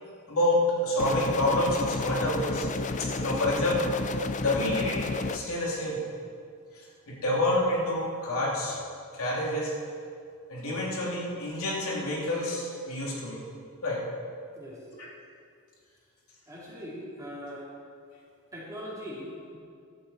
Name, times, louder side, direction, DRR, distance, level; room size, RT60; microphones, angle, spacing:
voice 1, 0.3-6.0 6.8-8.8 9.1-9.7 10.5-13.4 13.8-14.0 15.0-15.1, left 1 dB, 65° left, -5 dB, 3.3 m, -28 dB
sound 1, 1.0-5.4, left 3 dB, 35° left, 0.5 m, -31 dB
voice 2, 16.5-17.7 18.5-19.6, equal, 15° right, -7 dB, 3.6 m, -40 dB
16.0 x 12.0 x 4.4 m, 2.3 s
head